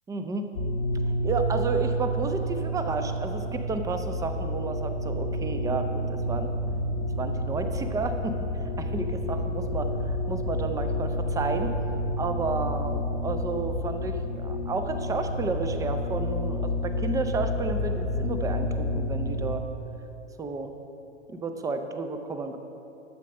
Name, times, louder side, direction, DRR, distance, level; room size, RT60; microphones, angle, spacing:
voice 1, 0.1-0.5 1.1-6.5 7.2-8.4 8.8-11.7 12.2-19.7 20.4-20.7 21.3-22.6, right 3 dB, 10° right, 7 dB, 0.5 m, -31 dB
sound 1, 0.5-19.6, equal, 80° left, 1.3 m, -29 dB
12.0 x 7.4 x 5.3 m, 3.0 s
figure-of-eight pair, 105°, 37 cm